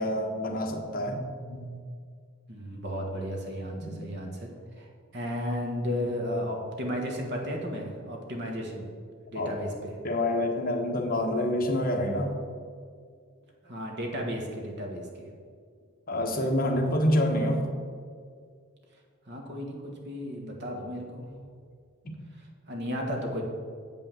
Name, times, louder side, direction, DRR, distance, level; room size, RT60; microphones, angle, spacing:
voice 1, 0.0-1.7 3.8-3.9 9.3-9.5 10.0-12.3 16.1-17.6 22.0-22.1, left 1 dB, 45° left, 2 dB, 1.2 m, -27 dB
voice 2, 2.5-4.5 4.8-8.9 9.3-9.9 13.6-15.3 19.2-21.3 22.3-23.4, equal, 55° right, 1 dB, 1.7 m, -34 dB
8.0 x 5.5 x 7.6 m, 2.1 s
head